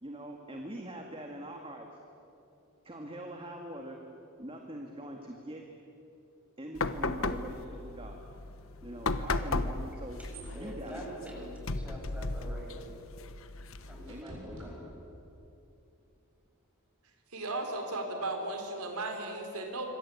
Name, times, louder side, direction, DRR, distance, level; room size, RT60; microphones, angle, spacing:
voice 1, 0.0-1.9 2.8-4.0 4.4-5.6 6.6-8.2 8.8-10.2 10.5-11.2 14.1-14.4, right 1 dB, 25° right, 2 dB, 2.1 m, -43 dB
sound 1, 6.7-14.2, left 3 dB, 60° left, 1.2 m, -36 dB
sound 2, 9.6-15.3, right 1 dB, 60° right, 7.8 m, -53 dB
voice 2, 10.3-12.9 13.9-14.9, equal, 5° right, -2 dB, 7.1 m, -45 dB
voice 3, 17.3-19.9, right 2 dB, 80° right, 4 dB, 3.9 m, -35 dB
27.0 x 25.0 x 8.6 m, 2.9 s
head